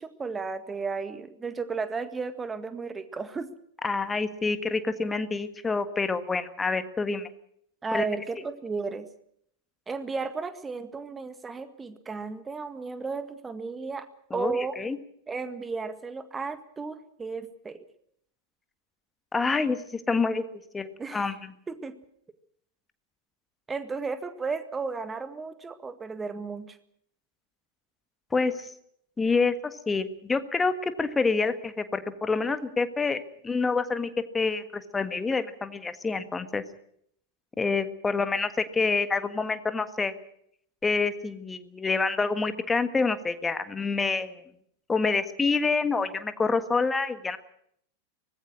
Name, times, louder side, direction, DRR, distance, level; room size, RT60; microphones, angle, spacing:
voice 1, 0.0-3.5 7.8-9.1 9.9-14.1 14.3-14.8 15.3-17.8 21.0-21.3 21.7-21.9 23.7-26.8, right 4 dB, 15° right, 11 dB, 1.8 m, -34 dB
voice 2, 3.8-7.3 7.9-8.1 14.3-15.0 19.3-20.4 20.7-21.5 28.3-28.7 29.2-34.1 34.3-36.6 37.6-40.1 40.8-44.4 44.9-47.4, left 4 dB, 15° left, 11 dB, 1.6 m, -27 dB
24.0 x 19.5 x 6.4 m, 0.68 s
figure-of-eight pair, 90°, 0 cm